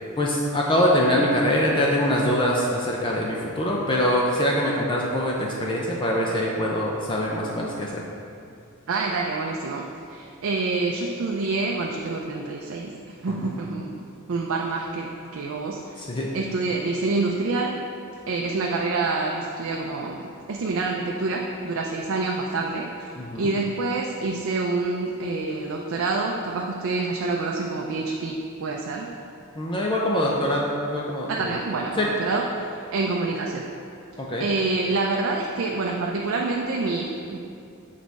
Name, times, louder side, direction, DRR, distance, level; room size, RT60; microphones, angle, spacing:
voice 1, 0.2-8.0 13.4-13.5 16.0-16.3 23.2-23.5 29.6-31.6 32.0-32.1 34.2-34.5, equal, 20° left, -3 dB, 0.5 m, -24 dB
voice 2, 8.9-14.0 14.3-16.0 16.3-17.8 18.3-23.1 23.4-29.1 31.3-33.7 34.4-37.4, right 3 dB, 60° right, 0 dB, 0.5 m, -27 dB
6.4 x 4.1 x 4.6 m, 2.5 s
head